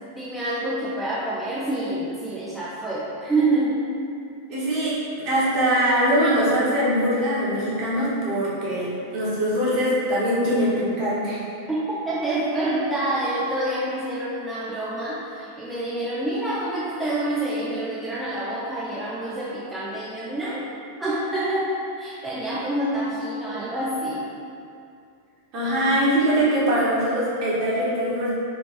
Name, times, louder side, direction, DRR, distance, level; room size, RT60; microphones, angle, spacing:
voice 1, 0.2-3.8 11.7-20.6 21.0-21.7 22.0-24.3, right 2 dB, 5° right, -9 dB, 0.5 m, -27 dB
voice 2, 4.5-11.4 25.5-28.3, equal, 40° right, -8 dB, 1.1 m, -22 dB
3.2 x 3.0 x 3.0 m, 2.5 s
figure-of-eight pair, 90°, 0 cm